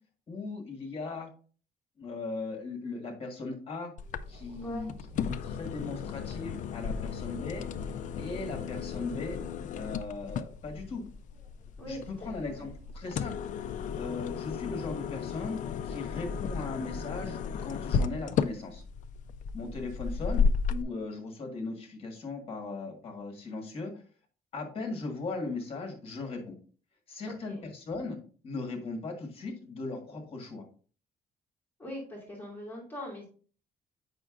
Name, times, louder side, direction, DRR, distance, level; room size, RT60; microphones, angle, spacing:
voice 1, 0.3-1.3 2.0-3.9 4.3-4.9 5.2-7.7 8.2-9.4 9.7-11.0 11.9-13.4 13.9-15.6 15.8-18.8 19.5-24.0 24.5-26.6 27.1-28.2 28.4-30.6, left 3 dB, 35° left, 2 dB, 1.7 m, -38 dB
sound 1, 4.0-20.8, left 6 dB, 50° left, 0.4 m, -34 dB
sound 2, 4.0-13.1, right 1 dB, 45° right, 2.8 m, -55 dB
voice 2, 11.8-12.7 27.3-27.6 31.8-33.3, left 1 dB, 10° left, -3 dB, 2.5 m, -41 dB
7.7 x 5.6 x 2.5 m, 0.39 s
cardioid pair, 175°, 17 cm